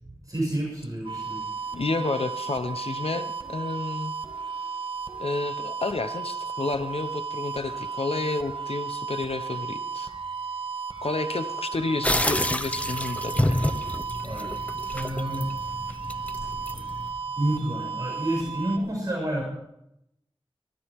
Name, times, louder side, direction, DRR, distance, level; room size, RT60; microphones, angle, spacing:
voice 1, 0.0-1.4 14.2-14.5 14.9-15.6 17.1-19.4, right 1 dB, 40° right, -4 dB, 6.5 m, -29 dB
sound 1, 1.0-18.8, right 5 dB, 65° right, 1.7 m, -34 dB
voice 2, 1.7-4.1 5.2-10.1 11.0-13.7, left 3 dB, 85° left, 9 dB, 1.0 m, -30 dB
sound 2, 12.0-17.1, left 1 dB, 15° left, 0.7 m, -29 dB
22.5 x 13.5 x 3.7 m, 0.79 s
wide cardioid pair, 65°, 10 cm